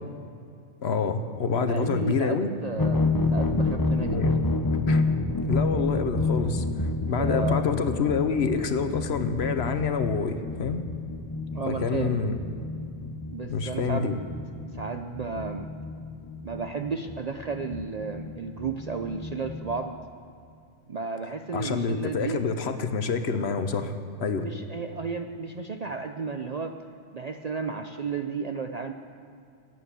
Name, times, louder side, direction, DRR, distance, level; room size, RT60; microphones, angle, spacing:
voice 1, 0.8-2.5 4.1-4.4 4.9-5.0 5.5-10.8 11.7-12.4 13.5-14.1 21.5-23.9 24.2-24.5, left 5 dB, 60° left, 8 dB, 1.1 m, -27 dB
voice 2, 1.6-4.3 7.1-7.6 11.5-12.2 13.3-14.2 14.7-15.7 16.4-19.9 20.9-22.5 24.4-26.8 27.1-28.9, right 5 dB, 50° right, 6 dB, 0.5 m, -33 dB
sound 1, 2.8-19.8, left 3 dB, 20° left, 0.6 m, -29 dB
14.5 x 9.4 x 8.2 m, 2.4 s
omnidirectional pair, 1.3 m